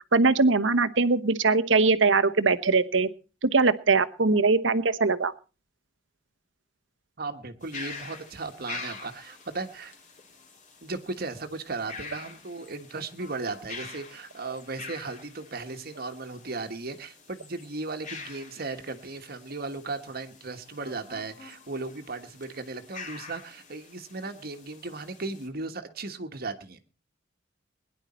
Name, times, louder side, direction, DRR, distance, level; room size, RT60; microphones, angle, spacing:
voice 1, 0.1-3.1 3.4-5.3, right 3 dB, 75° right, 13 dB, 1.0 m, -21 dB
voice 2, 7.2-9.9 10.8-26.8, right 3 dB, 50° right, 7 dB, 1.4 m, -36 dB
sound 1, 7.6-25.5, left 4 dB, 45° left, 3.4 m, -46 dB
21.5 x 10.5 x 4.3 m, 0.34 s
head